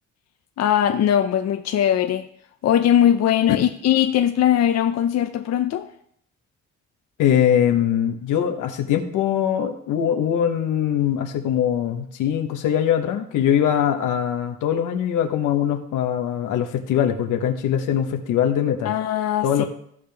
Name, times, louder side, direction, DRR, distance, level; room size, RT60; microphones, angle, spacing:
voice 1, 0.6-2.3 2.6-5.9 18.8-19.6, left 10 dB, 60° left, 6 dB, 0.6 m, -20 dB
voice 2, 7.2-18.9 19.4-19.6, left 9 dB, 85° left, 5 dB, 1.1 m, -22 dB
15.0 x 5.1 x 3.4 m, 0.68 s
cardioid pair, 90°, 30 cm